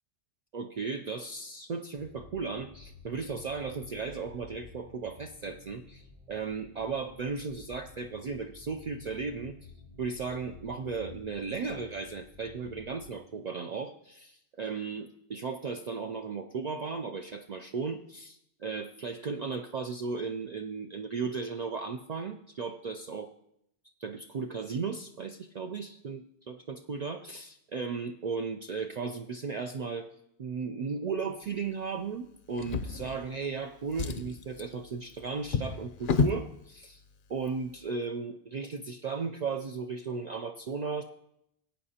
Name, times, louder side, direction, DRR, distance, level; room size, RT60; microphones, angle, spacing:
voice 1, 0.5-9.6 10.0-23.3 24.0-30.1 30.4-37.0 37.3-41.0, right 5 dB, 55° right, 4 dB, 0.5 m, -36 dB
sound 1, 2.0-13.2, left 4 dB, 85° right, 1.9 m, -52 dB
Drawer open or close, 32.5-33.5 33.8-36.5 37.3-37.5 37.9-38.0, left 4 dB, 60° left, 0.7 m, -32 dB
17.0 x 8.8 x 2.8 m, 0.77 s
omnidirectional pair, 1.1 m